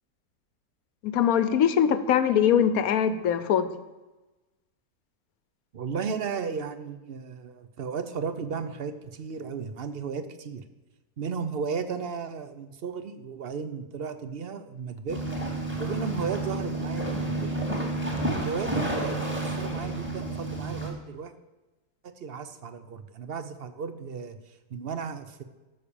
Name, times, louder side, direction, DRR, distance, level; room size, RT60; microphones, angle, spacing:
voice 1, 1.0-3.7, left 8 dB, 65° left, 12 dB, 1.2 m, -22 dB
voice 2, 5.7-10.6 11.2-15.2 15.8-17.5 18.4-21.3 22.0-25.4, right 6 dB, 50° right, 10 dB, 0.7 m, -35 dB
sound 1, 15.1-20.9, right 2 dB, 5° right, 2.2 m, -30 dB
13.0 x 6.6 x 7.0 m, 1.1 s
omnidirectional pair, 1.7 m